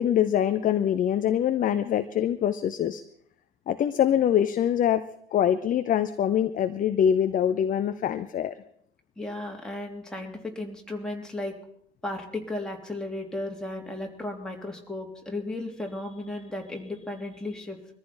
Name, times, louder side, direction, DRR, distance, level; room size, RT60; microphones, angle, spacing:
voice 1, 0.0-3.0 3.7-5.0 5.3-8.5, left 9 dB, 25° left, 10 dB, 0.7 m, -24 dB
voice 2, 9.2-11.5 12.0-17.8, left 2 dB, ahead, 0 dB, 3.0 m, -35 dB
23.0 x 14.5 x 4.4 m, 0.68 s
figure-of-eight pair, 75°, 32 cm